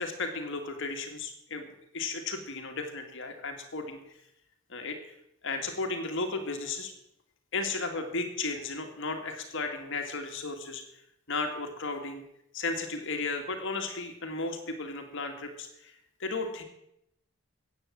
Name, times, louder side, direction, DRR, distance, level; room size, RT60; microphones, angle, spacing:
voice 1, 0.0-1.7 1.9-4.2 4.7-5.1 5.4-6.9 7.5-10.8 11.3-12.2 12.5-15.9 16.2-16.6, left 3 dB, 55° left, 5 dB, 2.1 m, -34 dB
15.0 x 9.0 x 7.5 m, 0.79 s
head